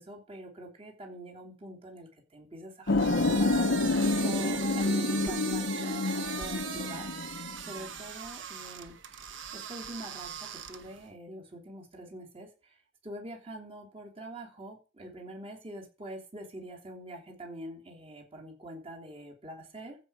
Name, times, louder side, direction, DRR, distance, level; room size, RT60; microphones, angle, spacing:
voice 1, 0.0-3.9 4.2-7.4 7.7-8.9 9.5-12.7 13.0-20.0, right 1 dB, 30° right, 0 dB, 3.0 m, -44 dB
sound 1, 2.9-7.9, left 2 dB, 70° left, 0.8 m, -28 dB
sound 2, 2.9-11.1, right 8 dB, 90° right, 1.2 m, -40 dB
15.0 x 5.5 x 4.8 m, 0.35 s
head